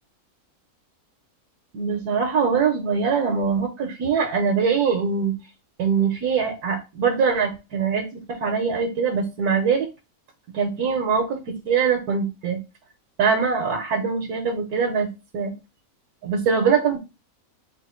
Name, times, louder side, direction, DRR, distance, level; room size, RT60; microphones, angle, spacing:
voice 1, 1.7-5.3 5.8-9.9 10.5-12.6 13.2-15.5 16.2-17.0, right 6 dB, 85° right, 2 dB, 1.4 m, -23 dB
3.9 x 2.5 x 4.3 m, 0.26 s
omnidirectional pair, 1.6 m